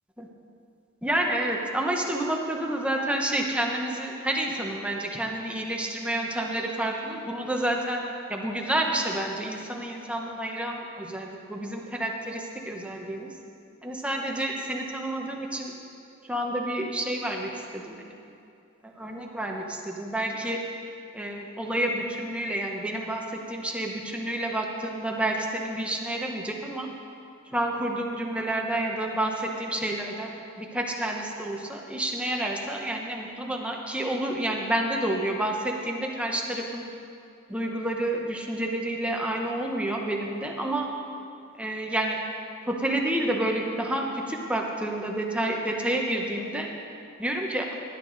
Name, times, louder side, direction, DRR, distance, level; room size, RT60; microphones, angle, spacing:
voice 1, 1.0-8.0 8.3-13.4 13.8-15.7 16.2-18.1 19.0-20.6 21.1-26.9 27.5-36.8 37.5-40.9 41.6-42.2 42.7-46.7 47.2-47.7, right 1 dB, 5° right, 0 dB, 1.0 m, -29 dB
15.5 x 10.5 x 4.0 m, 2.6 s
head